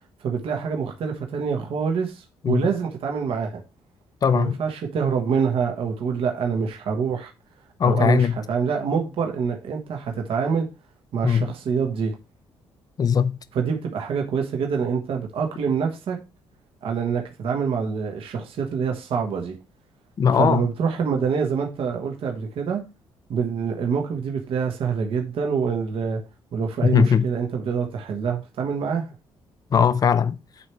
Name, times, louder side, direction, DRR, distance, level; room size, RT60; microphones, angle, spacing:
voice 1, 0.2-3.6 4.3-7.3 7.8-10.7 11.1-12.1 13.5-16.2 16.8-19.6 20.4-22.8 23.3-26.2 26.5-29.1, right 6 dB, 70° right, 1.4 m, -26 dB
voice 2, 4.2-4.6 7.8-8.3 11.2-11.5 13.0-13.4 20.2-20.7 26.8-27.3 29.7-30.4, left 7 dB, 40° left, 0.5 m, -19 dB
8.4 x 3.3 x 4.7 m
cardioid pair, 95°, 10 cm